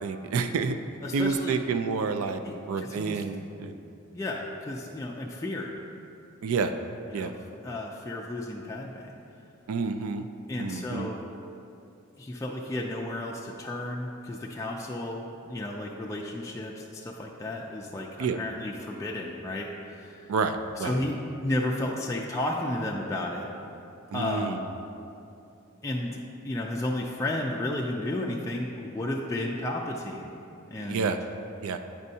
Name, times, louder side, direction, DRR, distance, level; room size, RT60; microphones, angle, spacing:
voice 1, 0.0-0.8 1.1-2.4 2.7-3.7 6.4-6.7 7.1-7.3 9.7-10.2 10.6-11.1 18.2-18.4 20.3-21.0 24.1-24.6 30.8-31.2 31.6-31.8, right 5 dB, 85° right, 8 dB, 0.4 m, -29 dB
voice 2, 1.0-1.6 2.4-3.2 4.1-5.7 7.1-7.3 7.6-9.1 10.5-11.2 12.2-20.3 20.8-23.5 24.1-24.7 25.8-26.2 26.4-30.3 30.7-31.1, left 1 dB, 15° left, -2 dB, 0.3 m, -33 dB
8.7 x 5.3 x 2.7 m, 2.7 s
head